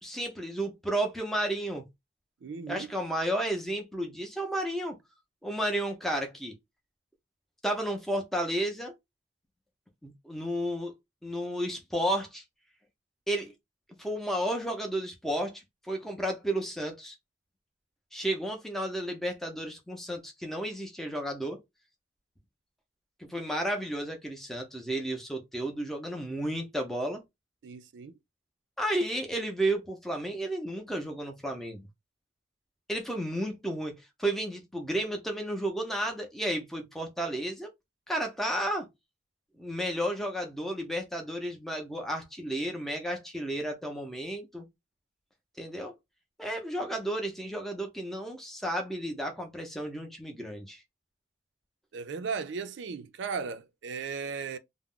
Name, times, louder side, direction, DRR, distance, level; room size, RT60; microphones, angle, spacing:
voice 1, 0.0-1.8 2.7-5.0 5.4-6.5 7.6-8.9 10.0-10.9 11.2-12.4 13.3-13.5 14.0-17.2 18.1-21.6 23.2-27.2 28.8-31.9 32.9-37.7 38.1-38.9 39.6-44.7 45.6-45.9 46.4-50.8, right 1 dB, ahead, 0.5 m, -32 dB
voice 2, 2.4-2.9 27.6-28.2 51.9-54.6, right 5 dB, 80° right, 0.4 m, -36 dB
2.3 x 2.0 x 3.5 m
head